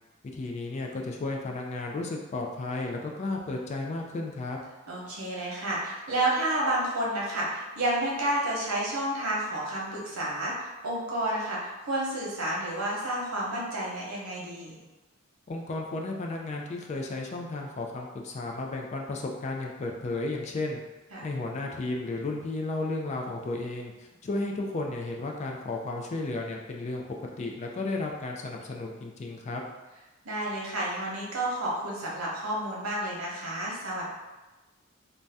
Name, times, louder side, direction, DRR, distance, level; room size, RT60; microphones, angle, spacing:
voice 1, 0.3-4.6 15.5-20.8 21.2-23.9 24.2-27.0 27.4-29.6, left 2 dB, 35° left, 1 dB, 0.3 m, -33 dB
voice 2, 4.9-14.8 21.1-21.2 30.2-34.0, right 1 dB, 90° right, -5 dB, 0.9 m, -30 dB
2.6 x 2.1 x 3.4 m, 1.1 s
head